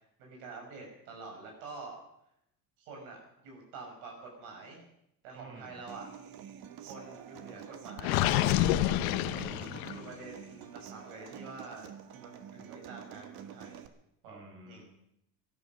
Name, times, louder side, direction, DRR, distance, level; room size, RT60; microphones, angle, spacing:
voice 1, 0.2-2.0 2.8-4.8 5.2-6.1 6.8-8.3 9.8-13.8 14.2-14.8, right 3 dB, 90° right, 0 dB, 6.6 m, -47 dB
voice 2, 5.3-5.7 9.2-9.8 14.2-14.8, right 3 dB, 30° right, 0 dB, 6.1 m, -49 dB
Human voice / Acoustic guitar, 5.9-13.9, right 9 dB, 60° right, 1.7 m, -48 dB
Gurgling, 8.0-10.1, left 14 dB, 85° left, 1.0 m, -28 dB
17.5 x 12.5 x 6.3 m, 0.77 s
cardioid pair, 130°, 40 cm